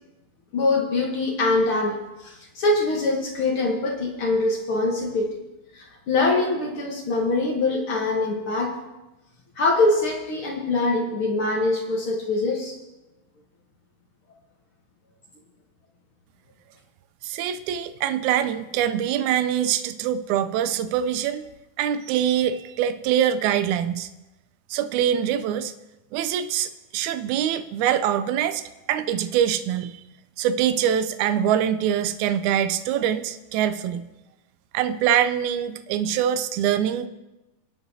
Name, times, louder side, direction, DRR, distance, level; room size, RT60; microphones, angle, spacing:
voice 1, 0.5-5.3 5.7-8.8 9.6-12.7, left 2 dB, 60° left, 0 dB, 1.4 m, -23 dB
voice 2, 17.2-21.5 21.8-24.1 24.7-25.7 26.1-28.6 28.9-30.0 30.4-34.1 34.7-37.1, right 10 dB, 80° right, 11 dB, 1.8 m, -24 dB
23.0 x 9.1 x 2.8 m, 1.0 s
omnidirectional pair, 4.0 m